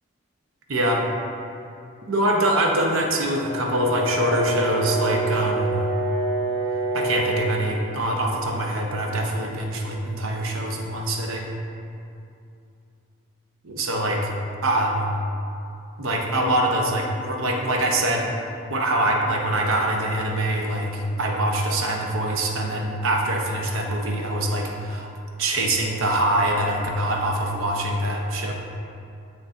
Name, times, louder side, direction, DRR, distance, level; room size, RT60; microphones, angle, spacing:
voice 1, 0.7-1.0 2.1-5.8 6.9-11.5 13.6-14.3 14.6-15.1 16.0-18.2 18.7-25.1 25.4-28.5, right 1 dB, 70° right, 1 dB, 0.7 m, -24 dB
Brass instrument, 3.4-7.7, right 2 dB, 35° left, 0.6 m, -26 dB
7.6 x 6.0 x 2.5 m, 2.6 s
head